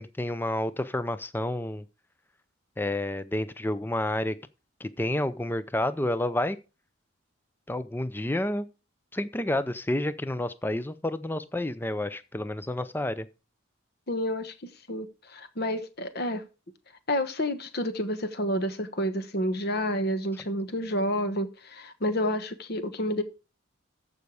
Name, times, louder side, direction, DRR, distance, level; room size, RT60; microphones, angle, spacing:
voice 1, 0.0-1.8 2.8-4.4 4.8-6.6 7.7-8.7 9.1-13.3, left 1 dB, 10° left, 0.5 m, -29 dB
voice 2, 14.1-16.4 17.1-23.2, equal, 50° left, 1.2 m, -29 dB
14.0 x 5.4 x 4.8 m
head